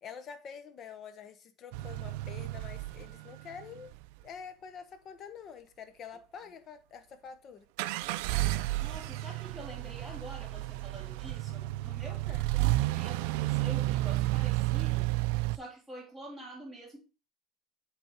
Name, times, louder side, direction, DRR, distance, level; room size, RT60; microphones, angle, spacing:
voice 1, 0.0-3.9 4.2-7.6, left 7 dB, 40° left, 0.8 m, -47 dB
sound 1, 1.7-4.0 7.8-15.6, right 18 dB, 90° right, 0.3 m, -31 dB
voice 2, 8.6-15.1 15.5-17.0, right 1 dB, 5° left, 3.4 m, -47 dB
7.7 x 3.5 x 4.5 m
cardioid pair, 145°, 0 cm